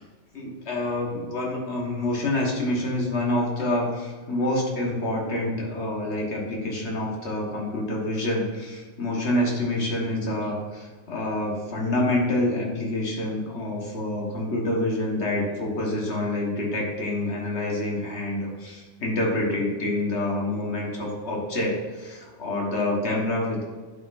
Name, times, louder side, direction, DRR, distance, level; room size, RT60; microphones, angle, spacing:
voice 1, 0.3-23.6, left 1 dB, 60° left, -2 dB, 1.7 m, -27 dB
11.0 x 4.6 x 2.6 m, 1.4 s
omnidirectional pair, 1.3 m